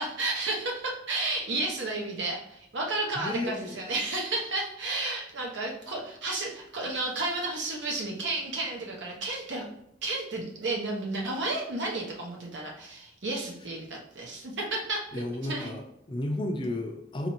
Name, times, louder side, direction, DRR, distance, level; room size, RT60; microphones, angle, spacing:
voice 1, 0.0-9.6 10.0-15.7, right 2 dB, 70° right, 0 dB, 0.8 m, -32 dB
voice 2, 3.2-3.8 15.1-17.3, left 1 dB, 25° left, 4 dB, 0.4 m, -33 dB
4.1 x 2.5 x 2.9 m, 0.76 s
head